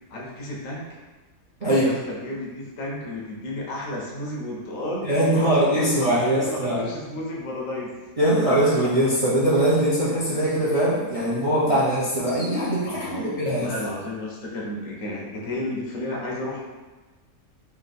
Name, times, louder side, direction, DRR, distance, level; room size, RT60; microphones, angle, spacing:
voice 1, 0.1-0.9 1.6-7.9 12.9-16.6, left 1 dB, 65° left, -3 dB, 1.0 m, -32 dB
voice 2, 5.0-6.8 8.2-13.7, right 1 dB, 35° right, -9 dB, 0.6 m, -21 dB
3.4 x 2.7 x 4.0 m, 1.2 s
omnidirectional pair, 1.6 m